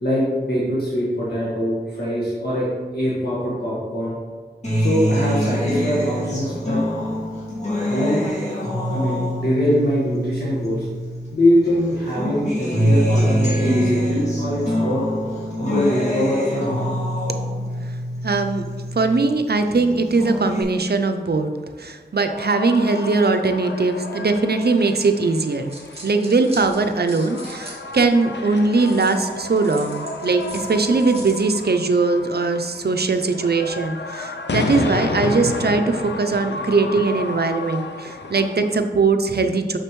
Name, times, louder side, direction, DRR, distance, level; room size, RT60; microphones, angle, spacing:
voice 1, 0.0-2.7 2.9-4.2 4.8-6.8 7.9-8.2 8.9-10.9 11.3-15.0 15.6-16.8, equal, 65° left, -8 dB, 1.6 m, -22 dB
Acoustic guitar, 4.6-11.3 11.7-19.3 19.7-20.6, equal, 40° left, 2.0 m, -24 dB
voice 2, 18.2-21.5 21.8-25.7 26.0-39.8, right 3 dB, 65° right, 7 dB, 0.5 m, -20 dB
sound 1, 22.2-38.8, left 3 dB, 80° left, 0.5 m, -31 dB
sound 2, 25.4-28.2 28.8-31.5, right 1 dB, 35° right, 1.8 m, -41 dB
6.5 x 5.9 x 3.1 m, 1.5 s
wide cardioid pair, 55°, 18 cm